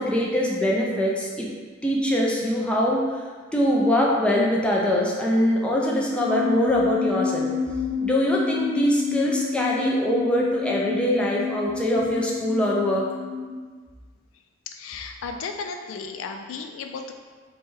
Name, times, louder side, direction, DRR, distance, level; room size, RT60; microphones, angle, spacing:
voice 1, 0.0-1.5 1.8-3.2 3.5-7.5 8.0-13.1, equal, 5° left, -3 dB, 0.4 m, -23 dB
sound 1, 6.2-13.6, left 6 dB, 45° right, 0.6 m, -29 dB
voice 2, 14.7-17.1, left 5 dB, 80° left, 5 dB, 0.3 m, -34 dB
3.2 x 2.2 x 4.2 m, 1.5 s
head